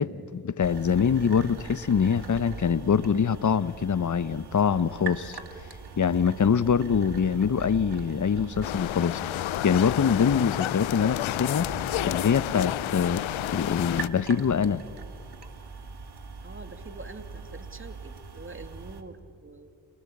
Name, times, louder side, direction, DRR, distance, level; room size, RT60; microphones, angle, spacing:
voice 1, 0.0-5.4 6.0-11.7 12.0-13.2 13.5-14.8, left 7 dB, 40° left, 1.0 m, -24 dB
sound 1, 0.6-19.0, right 5 dB, 55° right, 2.7 m, -42 dB
sound 2, 8.6-14.1, left 14 dB, 80° left, 0.7 m, -30 dB
voice 2, 16.4-19.7, right 3 dB, 25° right, 2.5 m, -45 dB
28.5 x 18.5 x 8.7 m
supercardioid pair, 45°, 47 cm